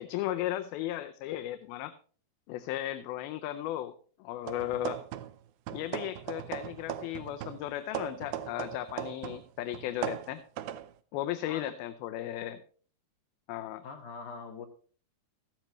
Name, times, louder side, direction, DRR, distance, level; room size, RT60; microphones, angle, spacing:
voice 1, 0.0-1.9 2.5-3.9 4.2-5.0 5.7-10.4 11.1-12.6 13.5-13.8, left 13 dB, 85° left, 9 dB, 2.5 m, -35 dB
sound 1, 4.4-5.4 5.7-9.5 9.7-10.9, right 11 dB, 80° right, 2.5 m, -38 dB
voice 2, 13.8-14.7, left 5 dB, 60° left, 4 dB, 2.5 m, -43 dB
14.5 x 12.0 x 3.1 m, 0.43 s
omnidirectional pair, 4.4 m